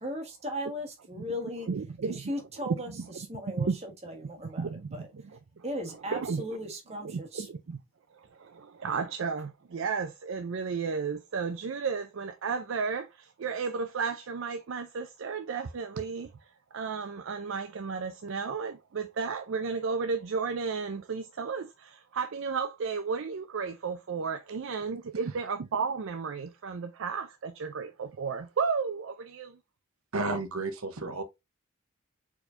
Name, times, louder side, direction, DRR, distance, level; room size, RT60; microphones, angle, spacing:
voice 1, 0.0-1.7 2.3-2.9 3.3-4.6 4.9-5.1 5.6-7.5, equal, 30° right, 1.3 m, -37 dB
voice 2, 1.6-2.2 2.9-3.3 3.6-3.8 4.4-5.6 6.1-6.6 7.0-7.8 8.4-16.3 16.7-29.6, right 5 dB, 60° right, 0.4 m, -33 dB
voice 3, 30.1-31.2, right 2 dB, 80° right, 0.8 m, -32 dB
4.6 x 4.3 x 2.5 m
head